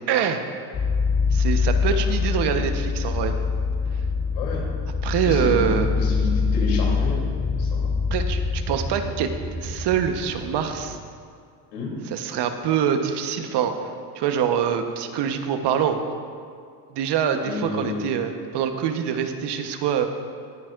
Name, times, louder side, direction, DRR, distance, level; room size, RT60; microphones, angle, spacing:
voice 1, 0.1-0.4 1.3-3.3 5.0-5.9 8.1-9.3 9.6-11.0 12.1-13.8 14.1-16.0 16.9-20.1, right 8 dB, 55° right, 7 dB, 1.2 m, -24 dB
sound 1, 0.7-11.0, left 5 dB, 45° left, 3.4 m, -24 dB
voice 2, 4.3-4.6 5.2-5.6 6.0-7.2 7.6-7.9 11.7-11.9 17.4-18.1, left 2 dB, 85° left, -2 dB, 3.2 m, -30 dB
19.5 x 10.5 x 2.6 m, 2.2 s
hypercardioid pair, 80°, 49 cm